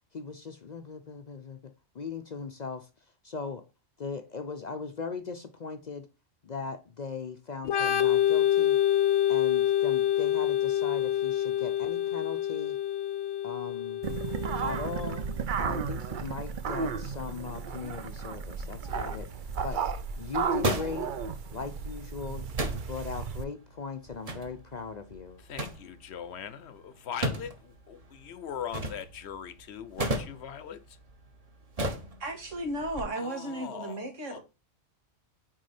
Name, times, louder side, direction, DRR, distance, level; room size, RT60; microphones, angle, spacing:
voice 1, 0.1-2.9 3.2-3.6 4.0-6.1 6.4-8.8 9.3-12.8 13.4-14.0 14.6-15.3 15.6-19.8 20.2-21.1 21.5-22.5 22.7-25.4, left 5 dB, 50° left, 0.6 m, -39 dB
Organ, 7.6-15.2, left 11 dB, 90° left, 1.1 m, -27 dB
sound 1, 14.0-23.4, right 6 dB, 50° right, 0.7 m, -34 dB
sound 2, 19.0-33.0, right 1 dB, 30° right, 1.1 m, -38 dB
voice 2, 25.4-31.0 33.2-34.4, left 8 dB, 65° left, 0.9 m, -41 dB
voice 3, 32.2-34.4, right 1 dB, 85° right, 2.2 m, -35 dB
6.3 x 4.6 x 4.2 m
omnidirectional pair, 1.3 m